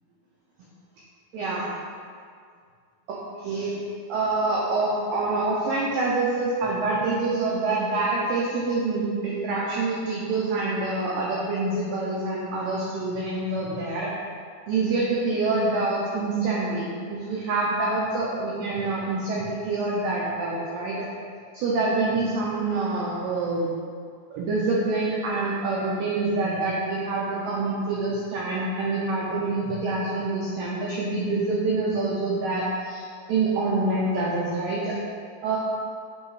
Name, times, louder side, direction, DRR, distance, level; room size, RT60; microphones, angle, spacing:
voice 1, 1.3-1.7 3.1-3.7 4.1-14.1 14.7-21.0 21.5-23.7 24.3-34.9 35.4-35.6, right 3 dB, 85° right, -5 dB, 1.9 m, -26 dB
7.9 x 2.9 x 4.7 m, 2.2 s
omnidirectional pair, 4.9 m